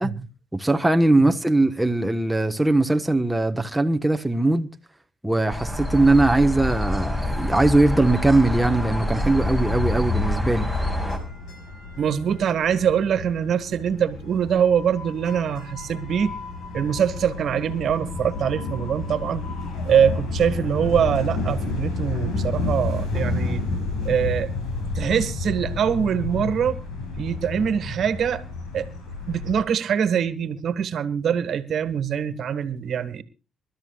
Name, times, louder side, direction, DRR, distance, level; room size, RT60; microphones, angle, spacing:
voice 1, 0.5-4.7 5.2-10.7, right 2 dB, 5° right, 1.2 m, -20 dB
sound 1, 5.5-11.2, left 1 dB, 20° left, 5.3 m, -26 dB
sound 2, 10.2-29.6, left 3 dB, 75° left, 7.3 m, -31 dB
voice 2, 12.0-16.3 16.7-19.4 19.8-23.6 24.0-24.5 24.9-26.8 27.2-28.4 28.7-28.9 29.3-33.2, right 8 dB, 65° right, 1.6 m, -23 dB
26.5 x 12.5 x 2.4 m
cardioid pair, 90°, 0 cm